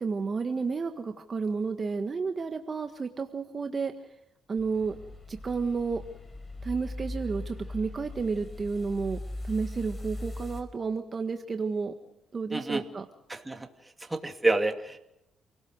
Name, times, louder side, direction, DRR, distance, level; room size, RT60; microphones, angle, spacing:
voice 1, 0.0-3.9 4.5-4.9 5.3-6.0 6.6-9.2 9.4-11.9 12.3-13.0, right 4 dB, 35° right, 6 dB, 1.6 m, -31 dB
sound 1, 4.6-10.6, left 1 dB, 30° left, 5.1 m, -39 dB
voice 2, 12.5-12.8 13.3-13.7 14.1-15.0, right 2 dB, 15° right, 6 dB, 2.5 m, -28 dB
28.5 x 18.0 x 6.3 m, 0.86 s
cardioid pair, 90°, 0 cm